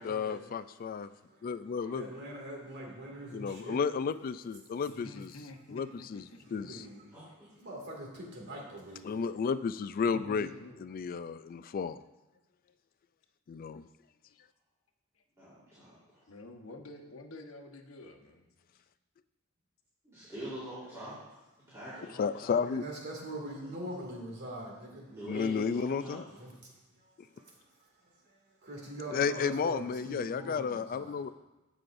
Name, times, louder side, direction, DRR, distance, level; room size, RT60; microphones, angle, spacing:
voice 1, 0.0-1.1 1.4-2.1 3.3-5.3 5.7-6.2 6.5-6.8 9.0-10.5 10.8-12.0 13.5-13.8 22.2-22.8 25.3-26.2 29.1-31.3, left 6 dB, 45° left, 13 dB, 0.3 m, -32 dB
voice 2, 1.9-3.8 6.5-7.1 7.6-9.2 22.6-25.1 26.3-26.5 27.0-27.1 28.3-28.4 28.6-31.3, right 1 dB, 55° right, -2 dB, 2.3 m, -43 dB
voice 3, 4.8-6.7 10.0-10.7 14.2-14.4 15.1-15.2 16.3-18.8, left 2 dB, 70° left, 4 dB, 1.1 m, -49 dB
voice 4, 15.4-16.2 20.0-21.2 21.7-22.6 25.1-26.4 29.0-29.2, equal, 15° right, -11 dB, 3.5 m, -44 dB
16.0 x 6.3 x 2.6 m, 1.1 s
head